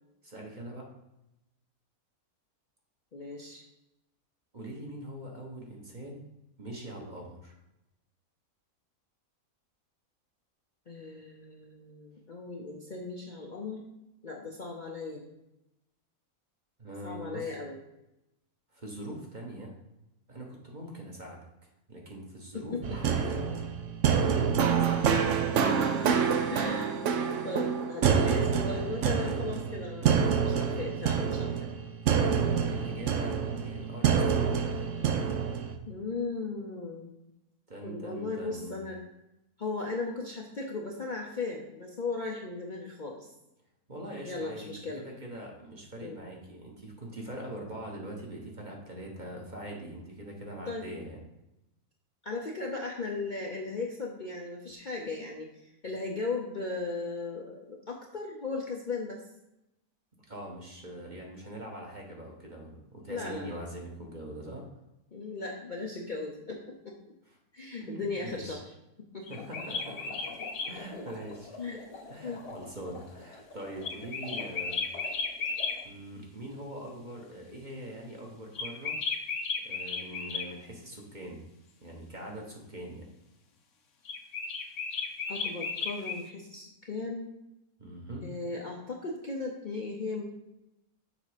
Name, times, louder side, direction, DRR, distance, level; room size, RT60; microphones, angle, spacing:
voice 1, 0.2-0.9 4.5-6.3 6.6-7.5 16.8-17.6 18.7-19.7 20.3-21.4 21.9-23.4 24.1-25.1 25.8-26.1 32.4-34.8 37.7-38.8 43.9-51.2 60.3-64.6 67.3-67.4 67.8-68.6 69.3-70.1 70.7-71.5 72.1-74.8 75.8-79.0 79.6-81.5 81.8-83.1 87.8-88.2, right 1 dB, 35° right, -1 dB, 1.2 m, -42 dB
voice 2, 3.1-3.7 10.9-13.9 14.2-15.2 17.0-17.8 22.5-23.2 24.4-24.7 25.9-27.1 27.4-31.5 35.9-37.2 37.8-39.0 39.6-43.3 44.2-45.1 46.0-46.3 50.7-50.9 52.2-59.2 63.1-63.6 65.1-67.0 67.5-68.6 69.0-69.3 70.9-71.0 71.6-71.8 72.2-72.4 85.3-87.3 88.2-90.2, left 3 dB, 40° left, -2 dB, 0.7 m, -37 dB
sound 1, 22.8-35.7, right 7 dB, 65° right, 0.9 m, -27 dB
sound 2, 69.3-70.7 73.8-75.8 78.5-80.5 84.0-86.2, left 4 dB, 60° left, 1.1 m, -34 dB
sound 3, 69.4-75.8, left 3 dB, 85° left, 2.0 m, -47 dB
7.0 x 4.1 x 5.0 m, 0.91 s
omnidirectional pair, 1.6 m